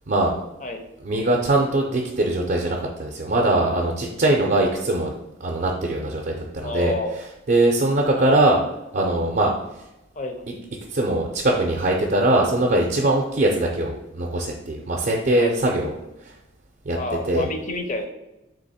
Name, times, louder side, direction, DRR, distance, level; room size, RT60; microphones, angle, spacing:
voice 1, 1.0-5.1 5.4-8.6 8.9-9.9 10.5-10.6 10.9-15.9 16.2-16.4 16.8-17.5, right 1 dB, 45° right, 0 dB, 0.5 m, -22 dB
voice 2, 6.6-7.1 8.2-8.4 10.2-10.4 15.4-15.5 16.9-18.1, left 2 dB, 35° left, 5 dB, 0.5 m, -29 dB
3.8 x 2.9 x 4.1 m, 0.92 s
head